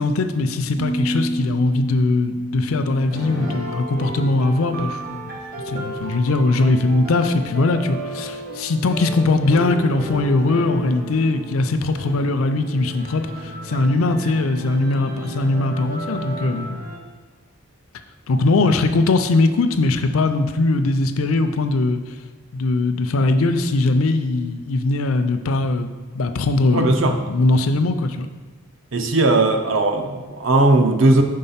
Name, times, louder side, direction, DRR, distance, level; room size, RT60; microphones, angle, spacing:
voice 1, 0.0-5.3 5.7-16.8 18.3-22.0 22.5-25.9 26.1-28.3, left 2 dB, 75° left, 9 dB, 0.5 m, -20 dB
Piano, 0.8-6.4, equal, 20° right, 0.5 m, -31 dB
sound 1, 3.1-17.0, right 1 dB, 45° right, 1.1 m, -34 dB
voice 2, 26.7-27.2 28.9-31.2, right 2 dB, 60° right, 5 dB, 0.6 m, -17 dB
5.4 x 3.8 x 5.6 m, 1.3 s
head